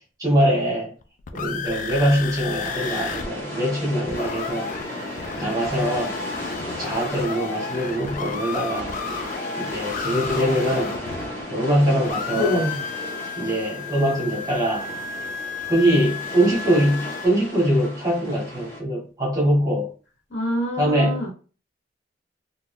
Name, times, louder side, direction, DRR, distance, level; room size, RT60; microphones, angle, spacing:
voice 1, 0.2-0.9 1.3-4.7 5.4-6.1 6.8-8.9 9.6-10.9 11.5-12.6 13.4-14.9 15.7-19.9 20.8-21.2, right 1 dB, 20° right, 1.1 m, -22 dB
sound 1, 1.0-3.3 3.5-3.6 3.9-11.8 12.0-17.3, left 6 dB, 45° left, 0.3 m, -33 dB
sound 2, 2.6-18.8, left 1 dB, 15° left, 0.8 m, -35 dB
voice 2, 12.3-12.8 20.3-21.3, left 2 dB, 65° left, 1.3 m, -25 dB
2.6 x 2.3 x 3.5 m
head